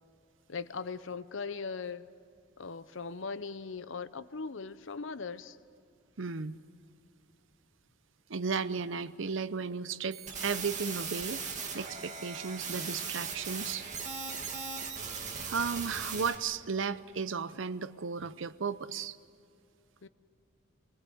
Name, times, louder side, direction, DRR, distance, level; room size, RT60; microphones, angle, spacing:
voice 1, 0.5-2.1 2.6-5.6 20.0-20.1, left 4 dB, 65° left, 0.7 m, -39 dB
voice 2, 6.2-6.6 8.3-11.4 11.7-13.9 15.5-19.2, right 5 dB, 65° right, 0.7 m, -34 dB
sound 1, 10.1-16.3, right 5 dB, 35° right, 2.3 m, -38 dB
25.0 x 22.5 x 7.9 m
head